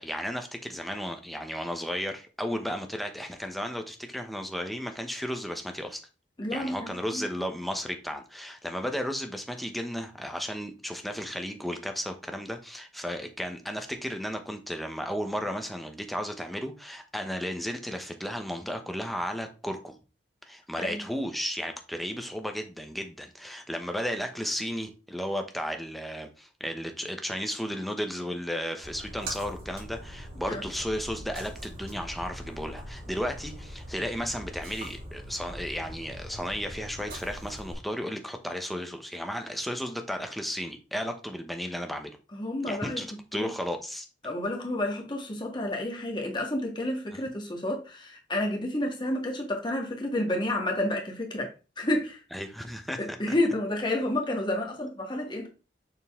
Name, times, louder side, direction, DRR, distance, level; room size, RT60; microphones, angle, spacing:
voice 1, 0.0-6.0 6.5-20.0 20.5-42.2 42.7-44.1 47.1-47.2 52.3-53.2, equal, ahead, 0.9 m, -34 dB
voice 2, 6.4-7.3 20.8-21.0 30.5-30.6 42.3-43.0 43.3-43.5 44.2-51.5 51.8-52.2 53.0-55.5, left 1 dB, 25° left, 1.7 m, -30 dB
Splash splatter, 28.8-37.7, right 1 dB, 60° right, 3.1 m, -42 dB
6.9 x 4.0 x 3.6 m
head